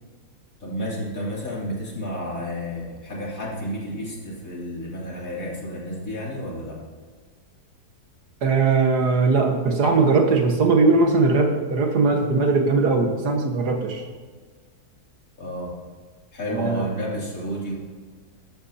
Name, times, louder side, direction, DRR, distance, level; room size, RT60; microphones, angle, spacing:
voice 1, 0.6-6.8 15.4-15.7 16.3-17.7, equal, 60° left, -4 dB, 3.4 m, -31 dB
voice 2, 8.4-14.1 16.5-16.9, right 3 dB, 85° right, 3 dB, 2.0 m, -20 dB
14.0 x 12.0 x 2.8 m, 1.5 s
omnidirectional pair, 1.7 m